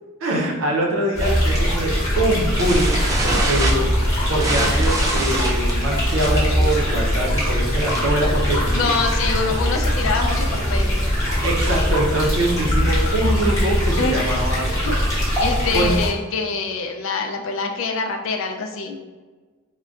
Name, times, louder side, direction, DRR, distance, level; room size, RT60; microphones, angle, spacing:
voice 1, 0.2-3.9 4.3-8.9 11.4-14.7 15.7-15.9, right 1 dB, 75° right, -2 dB, 0.7 m, -23 dB
sound 1, 1.1-16.1, equal, 15° left, 0.9 m, -21 dB
sound 2, 2.6-8.2 8.5-8.8 9.0-9.1 9.4-9.7 10.2-11.7, right 1 dB, 15° right, 0.4 m, -26 dB
voice 2, 8.7-11.0 14.0-14.2 14.8-14.9 15.4-19.0, left 4 dB, 70° left, 4 dB, 0.4 m, -25 dB
3.8 x 2.1 x 2.4 m, 1.3 s
head